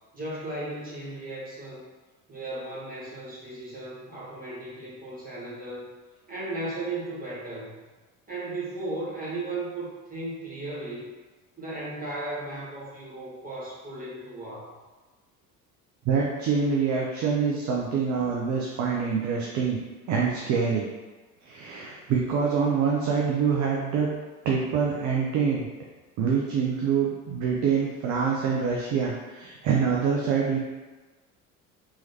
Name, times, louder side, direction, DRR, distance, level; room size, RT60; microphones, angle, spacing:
voice 1, 0.1-1.8 2.3-5.9 6.3-7.8 8.3-11.1 11.6-14.8, right 2 dB, 20° right, -8 dB, 1.5 m, -36 dB
voice 2, 16.1-19.8 20.1-20.9 21.4-24.1 24.4-25.7 26.2-30.6, right 6 dB, 40° right, -2 dB, 0.6 m, -25 dB
3.7 x 3.0 x 2.8 m, 1.3 s
figure-of-eight pair, 60°, 47 cm